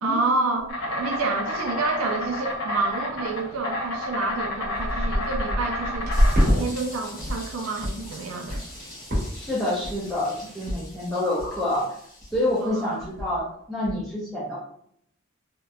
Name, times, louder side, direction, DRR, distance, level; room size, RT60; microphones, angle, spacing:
voice 1, 0.0-6.1 6.4-8.6 12.6-12.9, right 3 dB, 90° right, 4 dB, 0.4 m, -28 dB
sound 1, 0.6-0.7 1.2-1.3 1.5-2.0 2.2-2.5 3.1-3.2 3.9-4.0 4.3-6.6 6.9-7.5 7.8-8.0 8.5-8.8 9.1-9.5 9.8-10.2 10.7-10.8 11.1-11.2 11.4-11.8 12.2-12.4 12.7-12.8 13.0-13.4 13.8-13.9, equal, 45° right, 0.9 m, -26 dB
Insect, 0.7-10.7, left 1 dB, 70° left, 0.7 m, -31 dB
sound 2, 6.1-13.0, left 1 dB, 45° left, 0.9 m, -44 dB
voice 2, 9.3-11.9 12.3-14.6, left 1 dB, ahead, -8 dB, 0.5 m, -27 dB
2.7 x 2.1 x 2.3 m, 0.68 s
head